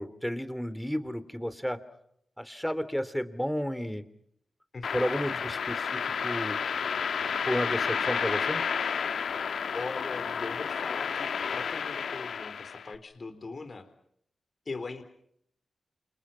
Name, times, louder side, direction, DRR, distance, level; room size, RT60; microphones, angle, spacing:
voice 1, 0.0-1.8 2.4-4.0 4.9-6.6 7.4-8.6, equal, ahead, 13 dB, 3.1 m, -32 dB
sound 1, 4.8-12.9, left 6 dB, 80° left, 1.5 m, -31 dB
voice 2, 9.7-13.9 14.7-15.0, left 3 dB, 50° left, 9 dB, 3.8 m, -40 dB
29.5 x 28.5 x 5.8 m, 0.71 s
cardioid pair, 65°, 0 cm